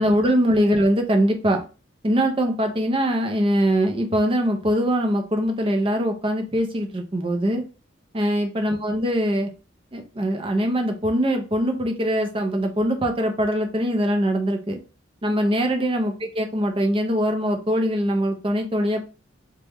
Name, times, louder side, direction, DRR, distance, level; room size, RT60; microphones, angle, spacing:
voice 1, 0.0-1.6 2.0-7.6 8.1-9.5 9.9-14.8 15.2-19.0, equal, 25° right, 5 dB, 0.5 m, -22 dB
3.3 x 2.2 x 3.0 m, 0.32 s
head